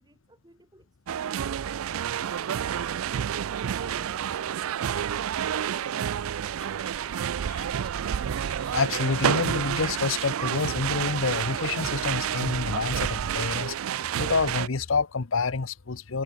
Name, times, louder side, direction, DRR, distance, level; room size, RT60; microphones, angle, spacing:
voice 1, 0.0-3.3, right 2 dB, 20° right, 2.8 m, -55 dB
sound 1, 1.1-14.7, right 9 dB, 90° right, 0.4 m, -29 dB
voice 2, 8.4-13.8 14.2-16.2, left 4 dB, 70° left, 0.9 m, -28 dB
head